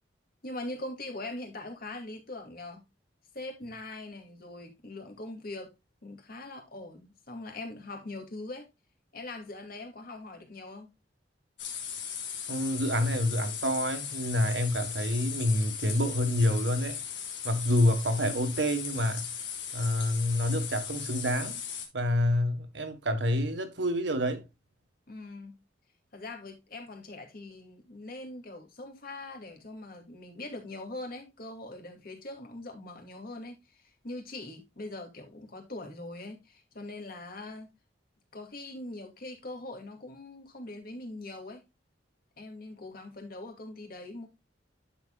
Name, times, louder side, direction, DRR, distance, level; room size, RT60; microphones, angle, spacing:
voice 1, 0.4-2.9 3.3-5.7 6.0-8.7 9.1-10.9 25.1-25.6 26.1-37.7 38.3-41.6 42.4-44.3, left 2 dB, 55° left, 2.4 m, -42 dB
sound 1, 11.6-21.9, left 7 dB, 85° left, 2.3 m, -38 dB
voice 2, 12.5-17.0 17.4-19.3 19.7-21.6 21.9-24.4, left 1 dB, 70° right, 1.6 m, -27 dB
10.5 x 6.7 x 2.3 m
head